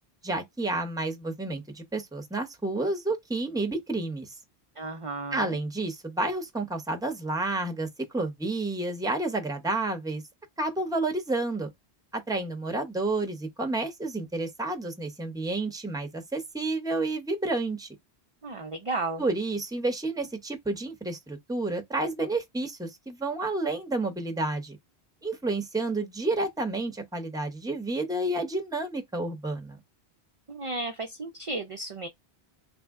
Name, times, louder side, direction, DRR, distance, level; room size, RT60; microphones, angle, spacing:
voice 1, 0.2-4.3 5.3-7.9 8.1-10.2 10.6-11.7 12.1-17.9 19.2-24.8 25.2-29.8, right 2 dB, 5° right, 0.6 m, -30 dB
voice 2, 4.8-5.6 18.4-19.2 30.5-32.1, right 3 dB, 45° right, 0.4 m, -34 dB
3.4 x 2.0 x 3.5 m
omnidirectional pair, 1.1 m